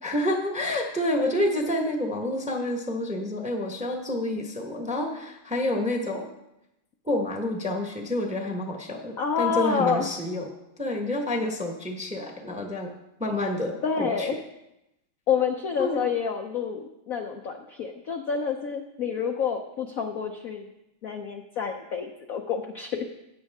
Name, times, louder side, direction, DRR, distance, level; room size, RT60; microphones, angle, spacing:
voice 1, 0.0-6.3 7.0-10.5 10.8-12.9 13.2-14.3 15.8-16.0, left 1 dB, 5° right, 2 dB, 0.8 m, -28 dB
voice 2, 9.2-10.1 13.8-14.4 15.3-20.7 21.0-23.1, left 6 dB, 65° left, 4 dB, 0.8 m, -28 dB
15.0 x 9.1 x 3.6 m, 0.89 s
omnidirectional pair, 2.4 m